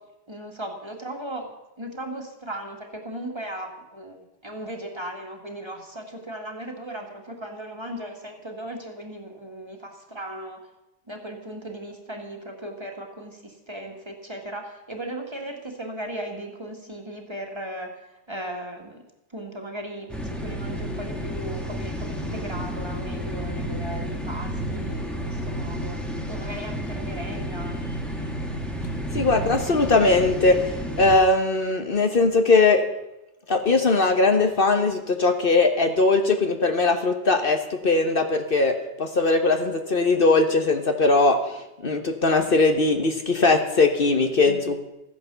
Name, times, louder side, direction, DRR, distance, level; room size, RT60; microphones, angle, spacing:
voice 1, 0.3-10.6 11.1-19.0 19.3-27.9 44.4-44.7, right 1 dB, 25° right, 2 dB, 2.0 m, -37 dB
sound 1, 20.1-31.2, equal, ahead, 1.6 m, -31 dB
voice 2, 29.1-32.8 33.5-41.6 41.8-44.9, left 3 dB, 55° left, 6 dB, 1.2 m, -20 dB
14.5 x 10.0 x 6.8 m, 0.94 s
omnidirectional pair, 1.2 m